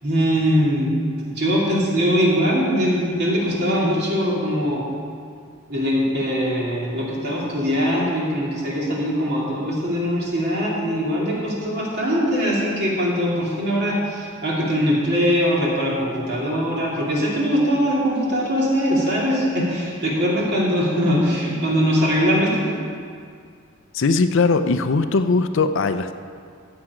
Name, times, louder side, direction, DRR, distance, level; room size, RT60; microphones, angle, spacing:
voice 1, 0.0-0.9 1.2-4.8 5.7-22.7, equal, 50° right, -5 dB, 2.8 m, -21 dB
voice 2, 23.9-26.1, left 4 dB, 60° left, 10 dB, 0.5 m, -19 dB
14.5 x 7.7 x 5.0 m, 2.2 s
head